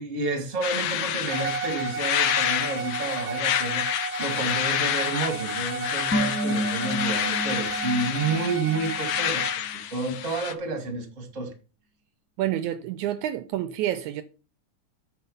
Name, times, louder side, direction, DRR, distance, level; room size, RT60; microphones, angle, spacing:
voice 1, 0.0-9.4 9.9-11.5, right 3 dB, 30° right, 2.0 m, -30 dB
sound 1, 0.6-10.5, left 11 dB, 75° left, 1.8 m, -29 dB
Bowed string instrument, 1.3-9.6, right 5 dB, 60° right, 1.8 m, -34 dB
sound 2, 6.1-9.4 9.7-9.8, equal, 10° left, 0.7 m, -31 dB
voice 2, 12.4-14.2, right 12 dB, 80° right, 1.9 m, -28 dB
8.7 x 6.4 x 5.5 m
omnidirectional pair, 3.5 m